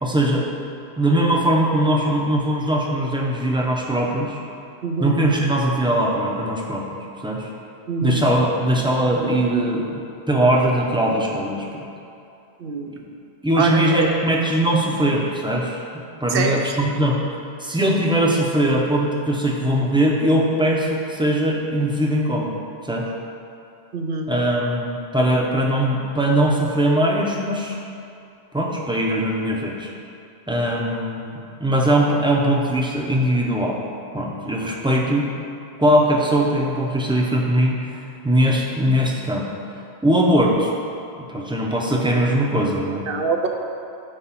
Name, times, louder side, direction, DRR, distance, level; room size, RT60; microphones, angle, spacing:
voice 1, 0.0-0.5 1.0-4.4 5.0-6.8 7.2-7.5 8.0-10.0 10.3-11.8 12.9-13.0 13.4-15.8 16.2-17.2 17.6-22.5 22.8-23.1 24.3-27.8 28.5-29.9 30.5-33.7 34.1-35.3 35.8-37.9 38.2-39.5 40.0-40.7 41.3-43.0, right 1 dB, 5° right, -3 dB, 0.7 m, -20 dB
voice 2, 4.8-5.2 7.9-8.2 12.6-12.9 13.6-14.2 16.3-16.8 23.9-24.3 43.1-43.5, right 4 dB, 65° right, 4 dB, 0.9 m, -24 dB
6.6 x 4.5 x 5.8 m, 2.6 s
omnidirectional pair, 1.1 m